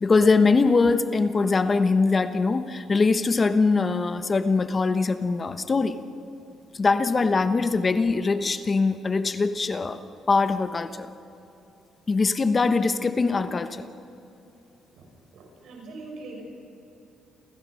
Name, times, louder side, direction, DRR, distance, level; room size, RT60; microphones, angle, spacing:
voice 1, 0.0-6.0 6.7-10.0 10.3-11.1 12.1-13.9, left 4 dB, 35° left, 11 dB, 1.0 m, -22 dB
voice 2, 14.9-16.4, right 3 dB, 75° right, 0 dB, 6.5 m, -42 dB
29.0 x 16.0 x 6.4 m, 2.9 s
cardioid pair, 90°, 0 cm